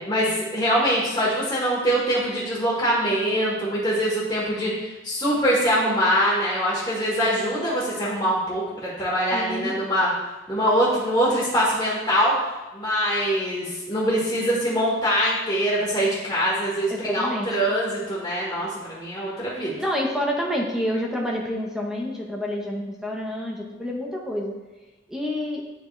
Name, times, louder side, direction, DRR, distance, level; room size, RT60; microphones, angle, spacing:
voice 1, 0.0-10.1 10.5-12.3 12.7-19.8, equal, 20° left, -6 dB, 1.3 m, -23 dB
voice 2, 9.3-9.8 16.9-17.6 19.8-24.6 25.1-25.6, equal, 5° right, -2 dB, 0.8 m, -28 dB
9.8 x 3.5 x 3.2 m, 1.1 s
head